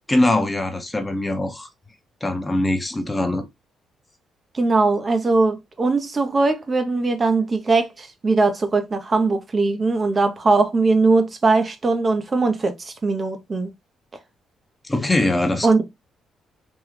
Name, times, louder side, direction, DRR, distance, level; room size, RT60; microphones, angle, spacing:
voice 1, 0.1-1.7 2.2-3.5 14.8-15.7, left 1 dB, 15° left, 0.7 m, -22 dB
voice 2, 4.5-13.7 15.6-15.8, right 3 dB, 30° right, 0.6 m, -20 dB
3.5 x 2.3 x 3.0 m
cardioid pair, 90°, 0 cm